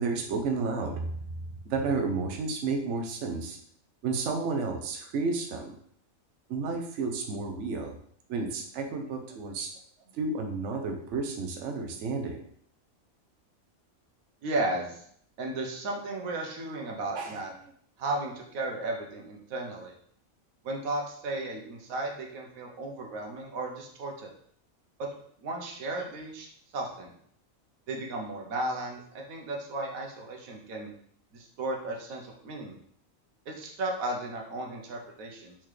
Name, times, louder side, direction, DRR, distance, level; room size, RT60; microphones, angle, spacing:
voice 1, 0.0-3.6 4.0-5.7 6.5-7.9 8.3-9.7 10.1-12.4 17.1-17.4, right 4 dB, 65° right, 3 dB, 0.9 m, -31 dB
voice 2, 14.4-15.0 15.4-17.5 18.0-19.9 20.6-24.3 25.0-25.1 25.4-26.5 26.7-27.1 27.9-30.9 31.3-32.8 33.5-35.6, right 2 dB, 85° right, 1 dB, 1.3 m, -34 dB
4.3 x 3.8 x 3.2 m, 0.63 s
omnidirectional pair, 1.4 m